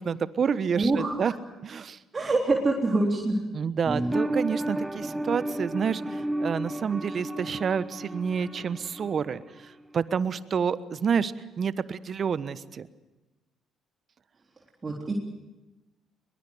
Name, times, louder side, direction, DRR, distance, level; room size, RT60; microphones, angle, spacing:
voice 1, 0.0-1.3 1.6-2.0 3.5-9.4 9.9-12.9, right 6 dB, 45° right, 15 dB, 1.2 m, -29 dB
voice 2, 0.8-1.3 2.1-3.4 14.8-15.1, right 2 dB, 30° right, -1 dB, 3.6 m, -25 dB
sound 1, 3.9-9.4 9.6-9.7, right 1 dB, 15° right, 1.2 m, -32 dB
22.5 x 22.5 x 8.0 m, 1.1 s
hypercardioid pair, 50°, 0 cm